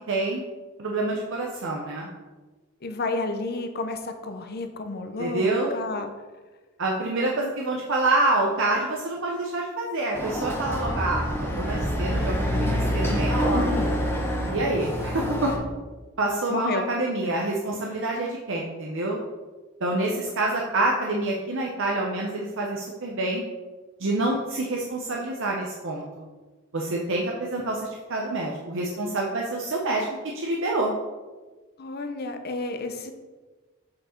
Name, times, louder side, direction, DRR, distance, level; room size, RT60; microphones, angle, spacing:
voice 1, 0.1-0.4 0.8-2.1 5.2-5.8 6.8-13.7 14.5-15.5 16.2-19.2 19.8-23.4 24.0-26.3 26.7-30.1 30.3-30.9, right 2 dB, 65° right, -1 dB, 0.8 m, -27 dB
voice 2, 2.8-6.1 13.5-13.8 16.5-16.9 31.8-33.1, left 3 dB, 50° left, 7 dB, 0.7 m, -31 dB
Chatter / Car passing by / Motorcycle, 10.1-15.6, equal, 10° left, 1.5 m, -26 dB
7.5 x 4.8 x 4.4 m, 1.3 s
head